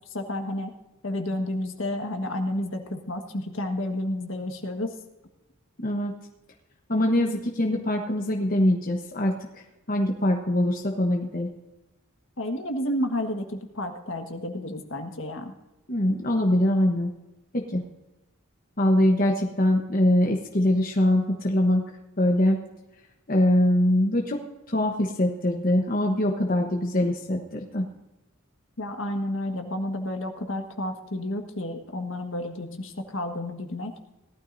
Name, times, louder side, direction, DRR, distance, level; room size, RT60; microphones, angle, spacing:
voice 1, 0.1-0.7 1.0-4.9 12.4-15.5 28.8-33.9, left 1 dB, 65° left, 4 dB, 1.6 m, -31 dB
voice 2, 5.8-6.1 6.9-9.6 9.9-11.5 15.9-17.1 17.5-17.8 18.8-21.9 22.2-22.6 23.3-24.4 24.7-27.9, left 1 dB, 40° left, 1 dB, 1.1 m, -23 dB
18.0 x 12.5 x 2.7 m, 1.0 s
head